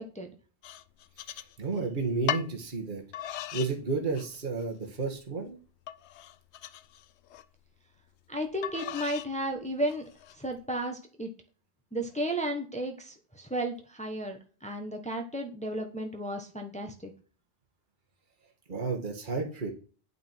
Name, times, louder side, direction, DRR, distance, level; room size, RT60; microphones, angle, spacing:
sound 1, 0.6-1.8 2.3-2.5 3.1-3.7 4.1-4.6 5.1-5.2 5.9-7.4 8.6-9.3 9.9-10.4, left 11 dB, 85° left, 0.9 m, -37 dB
voice 1, 1.3-3.0 3.5-5.6 18.7-19.7, right 4 dB, 50° right, 2 dB, 1.6 m, -32 dB
voice 2, 8.3-10.0 10.4-11.3 11.9-17.1, right 1 dB, 5° left, 3 dB, 1.1 m, -33 dB
9.3 x 5.7 x 4.5 m, 0.39 s
omnidirectional pair, 1.1 m